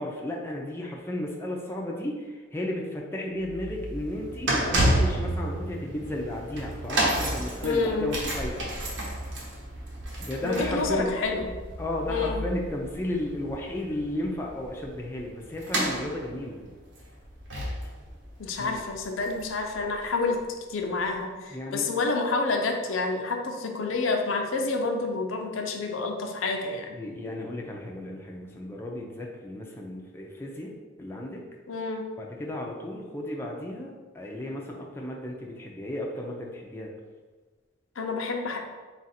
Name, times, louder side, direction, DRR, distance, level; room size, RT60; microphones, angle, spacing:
voice 1, 0.0-8.7 10.2-11.1 11.8-16.7 18.6-18.8 21.5-21.9 26.9-30.7 31.0-31.4 32.2-36.9, left 1 dB, 10° left, -1 dB, 0.4 m, -34 dB
sound 1, 3.4-19.7 20.0-20.2 21.0-21.1, right 1 dB, 70° right, 0.9 m, -31 dB
voice 2, 7.6-8.2 10.4-11.5 12.1-12.4 18.4-20.4 20.7-27.0 31.7-32.0 38.0-38.6, left 3 dB, 90° left, 3 dB, 0.6 m, -28 dB
3.9 x 2.5 x 4.2 m, 1.4 s
head